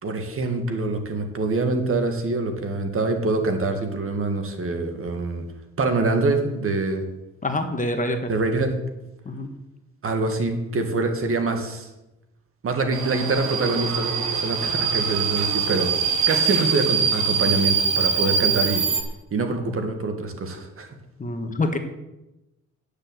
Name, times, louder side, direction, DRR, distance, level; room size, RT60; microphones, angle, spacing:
voice 1, 0.0-5.4 5.8-7.0 8.3-8.7 10.0-11.9 12.6-15.9 16.3-18.8 19.3-20.9, right 3 dB, 45° right, 5 dB, 2.0 m, -25 dB
voice 2, 7.4-8.3 9.2-9.5 21.2-21.8, left 2 dB, 25° left, 6 dB, 1.4 m, -26 dB
Subway metro underground, 12.9-19.0, right 6 dB, 85° right, 1.6 m, -23 dB
9.7 x 6.8 x 8.1 m, 0.97 s
cardioid pair, 90°, 30 cm